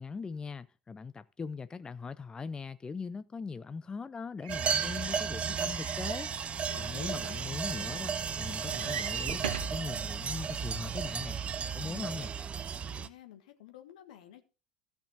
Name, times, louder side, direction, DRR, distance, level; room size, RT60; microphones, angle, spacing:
voice 1, 0.0-6.3 6.7-12.3, left 5 dB, 20° left, 0.4 m, -40 dB
sound 1, 4.4-9.8 10.5-10.6 10.9-11.0, right 8 dB, 75° right, 1.2 m, -42 dB
sound 2, 4.5-13.1, right 6 dB, 30° right, 0.6 m, -34 dB
voice 2, 6.7-7.5 12.9-14.4, left 10 dB, 70° left, 1.5 m, -51 dB
15.5 x 5.8 x 3.9 m
figure-of-eight pair, 75°, 4 cm